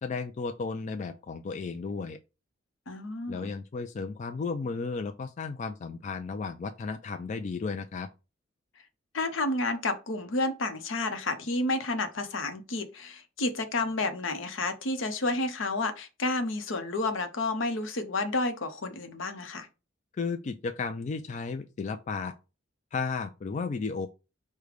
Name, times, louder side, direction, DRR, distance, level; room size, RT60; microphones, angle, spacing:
voice 1, 0.0-2.2 3.3-8.1 20.2-22.3 22.9-24.1, left 4 dB, 40° left, 0.3 m, -34 dB
voice 2, 2.9-3.5 9.1-19.7, left 2 dB, 75° left, 0.8 m, -30 dB
5.0 x 2.2 x 4.8 m
head